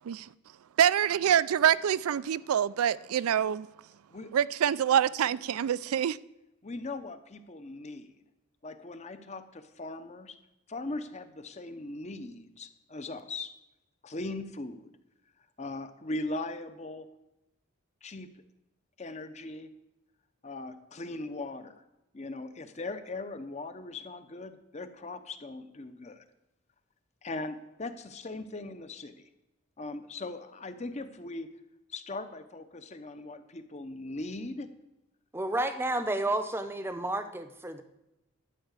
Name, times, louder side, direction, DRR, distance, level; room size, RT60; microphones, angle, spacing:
voice 1, 0.8-3.7 4.3-6.2, right 9 dB, 85° right, 0.4 m, -25 dB
voice 2, 6.6-8.2 8.6-10.4 10.7-13.5 14.0-14.9 15.6-17.1 18.0-18.3 19.0-19.7 20.4-21.7 22.1-26.2 27.2-29.3 29.8-31.5 31.9-33.4 33.7-34.7, left 2 dB, 30° left, 0.7 m, -39 dB
voice 3, 35.3-37.8, right 1 dB, 10° right, 0.7 m, -31 dB
12.0 x 5.7 x 8.1 m
head